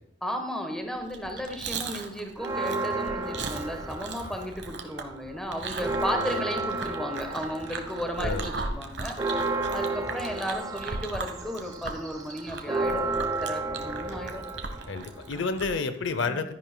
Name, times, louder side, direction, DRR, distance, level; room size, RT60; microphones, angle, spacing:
voice 1, 0.2-9.2 9.7-13.0 13.4-14.4 15.3-15.5 16.2-16.4, equal, 5° left, 3 dB, 1.0 m, -34 dB
Chewing mastication, 1.0-15.8, right 3 dB, 60° right, 1.0 m, -37 dB
Church bell, 2.4-4.8 5.1-5.2 5.5-15.6, right 2 dB, 20° right, 0.7 m, -33 dB
voice 2, 14.9-16.6, left 4 dB, 70° left, 10 dB, 0.6 m, -30 dB
12.0 x 10.0 x 2.2 m, 0.86 s
head